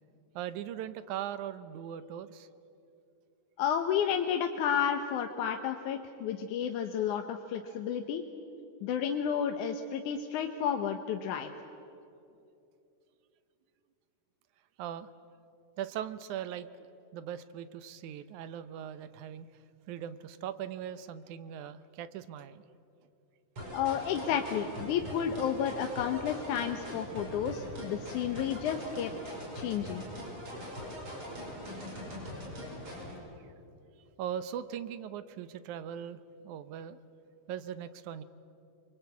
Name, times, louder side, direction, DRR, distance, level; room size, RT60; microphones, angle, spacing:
voice 1, 0.4-2.5 14.8-15.1 15.8-16.7 17.1-19.5 19.9-22.6 34.2-36.2 36.4-37.0 37.5-38.2, right 10 dB, 75° right, 13 dB, 2.1 m, -39 dB
voice 2, 3.6-8.2 8.8-11.5 23.7-29.1 29.5-30.0, left 8 dB, 75° left, 5 dB, 2.3 m, -31 dB
sound 1, 23.6-33.2, equal, 40° right, 6.2 m, -41 dB
27.5 x 24.0 x 8.4 m, 2.7 s
omnidirectional pair, 3.8 m